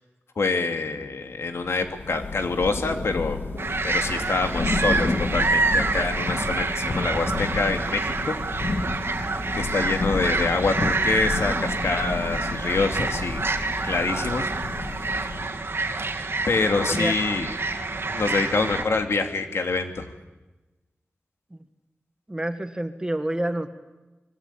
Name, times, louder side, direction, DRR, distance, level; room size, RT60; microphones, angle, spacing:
voice 1, 0.4-3.4 3.8-8.3 9.5-13.4 13.8-14.5 16.5-17.5 18.1-20.1, left 3 dB, 90° left, 6 dB, 2.7 m, -26 dB
Thunder / Rain, 1.6-15.7, left 3 dB, 60° left, 3.0 m, -31 dB
sound 1, 3.6-18.8, right 3 dB, 65° right, 2.3 m, -27 dB
voice 2, 22.3-23.7, right 1 dB, 15° right, 8 dB, 1.9 m, -28 dB
25.5 x 23.0 x 8.8 m, 1.1 s
wide cardioid pair, 105°, 4 cm